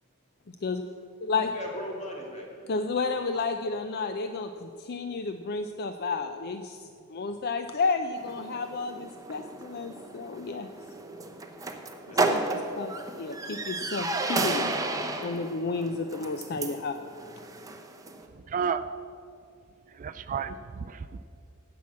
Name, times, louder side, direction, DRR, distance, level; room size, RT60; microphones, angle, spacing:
voice 1, 1.4-2.7 3.1-3.5 12.1-12.5 18.6-18.8, equal, 30° left, -1 dB, 2.5 m, -40 dB
voice 2, 2.7-10.7 12.3-12.9 13.2-14.7 15.2-17.0, left 4 dB, 50° left, 7 dB, 0.5 m, -31 dB
sound 1, 8.2-18.2, right 2 dB, 15° right, 0.9 m, -33 dB
voice 3, 18.5-18.8 20.0-21.2, right 6 dB, 35° right, 11 dB, 0.3 m, -31 dB
16.0 x 6.0 x 7.3 m, 2.5 s
head